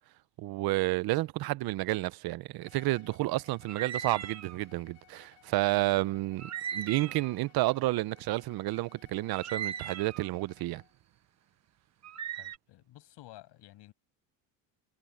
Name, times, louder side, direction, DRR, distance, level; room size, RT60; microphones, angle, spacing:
voice 1, 0.4-10.8, right 18 dB, 55° right, 0.7 m, -30 dB
Bowed string instrument, 2.6-10.9, left 22 dB, 80° left, 6.7 m, -62 dB
sound 1, 3.7-4.6 6.4-7.4 9.3-10.3 12.0-12.6, right 9 dB, 35° right, 1.3 m, -38 dB
voice 2, 12.4-13.9, left 16 dB, 65° left, 7.1 m, -52 dB
cardioid pair, 135°, 45 cm